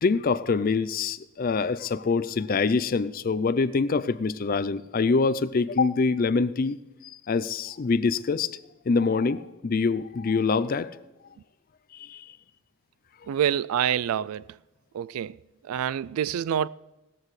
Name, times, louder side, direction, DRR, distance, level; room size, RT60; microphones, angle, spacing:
voice 1, 0.0-6.8 7.3-8.6 8.9-11.0 12.0-12.3, left 4 dB, 40° left, 0.4 m, -25 dB
voice 2, 13.3-14.6 14.9-15.4 15.6-16.7, right 9 dB, 80° right, 0.3 m, -27 dB
18.0 x 14.0 x 3.2 m
head